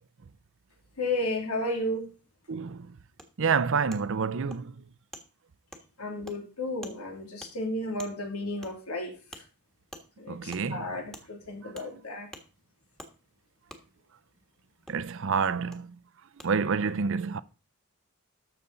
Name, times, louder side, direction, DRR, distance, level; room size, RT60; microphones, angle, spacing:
voice 1, 1.0-2.1 6.0-9.4 10.2-12.3, left 1 dB, 90° left, 2.8 m, -33 dB
voice 2, 2.5-2.9 3.4-4.7 10.3-10.9 14.9-15.9 16.4-17.4, right 5 dB, 60° right, 0.6 m, -28 dB
Wood, 3.2-3.3 3.9-4.0 4.5-4.6 5.1-5.2 5.7-5.8 6.2-6.4 6.8-7.0 7.4-7.5 8.0-8.1 8.6-8.7 9.3-9.4 9.9-10.0 10.5-10.6 11.1-11.2 11.7-11.9 12.3-12.4 13.0-13.1 13.7-13.8 14.9-15.0 15.7-15.8 16.4-16.5, equal, ahead, 1.4 m, -45 dB
12.5 x 6.9 x 4.0 m
head